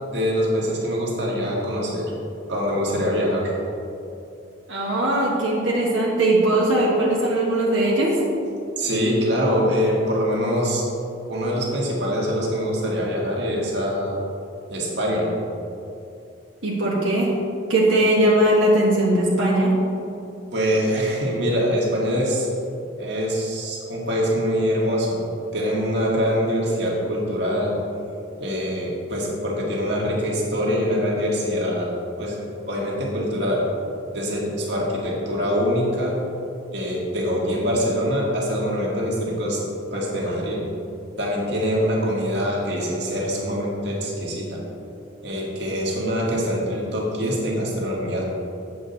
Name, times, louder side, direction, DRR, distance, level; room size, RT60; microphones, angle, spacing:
voice 1, 0.1-2.1 2.5-3.5 8.8-10.8 11.3-14.2 14.7-15.3 20.5-22.5 23.0-25.3 25.5-27.8 28.4-31.9 32.2-32.4 32.7-33.6 34.1-36.2 36.7-39.6 39.9-40.7 41.2-44.6 45.2-48.2, equal, 60° right, -4 dB, 1.8 m, -24 dB
voice 2, 4.7-8.2 16.6-17.3 17.7-19.7, right 1 dB, 85° right, -5 dB, 1.5 m, -19 dB
8.0 x 7.7 x 4.0 m, 2.7 s
head